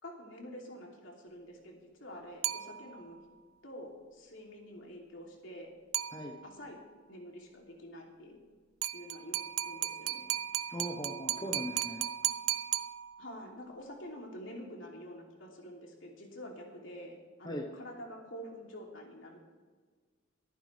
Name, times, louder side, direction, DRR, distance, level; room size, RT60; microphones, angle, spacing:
voice 1, 0.0-3.2 3.6-5.7 6.4-6.8 7.1-8.4 8.9-9.4 9.6-10.3 13.2-19.4, equal, 70° left, -1 dB, 3.1 m, -47 dB
sound 1, 2.4-3.2 5.9-6.7 8.8-13.5, right 13 dB, 85° right, 0.5 m, -36 dB
voice 2, 10.7-12.1 17.4-17.7, equal, 20° left, 2 dB, 1.1 m, -39 dB
24.5 x 9.5 x 3.4 m, 1.5 s
head